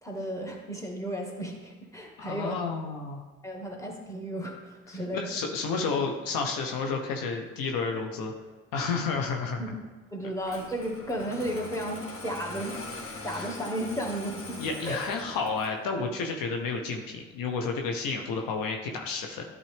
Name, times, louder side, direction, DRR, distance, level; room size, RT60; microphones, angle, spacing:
voice 1, 0.0-2.6 3.4-5.3 9.6-9.8 10.1-12.8 13.2-15.0, equal, 10° left, 0 dB, 1.9 m, -34 dB
voice 2, 2.2-3.2 4.9-8.3 8.7-9.6 13.3-13.5 14.6-19.4, left 4 dB, 65° left, 3 dB, 1.0 m, -31 dB
Engine starting, 10.4-15.8, left 2 dB, 35° left, 1.9 m, -42 dB
11.5 x 4.3 x 3.5 m, 1.3 s
hypercardioid pair, 50°, 36 cm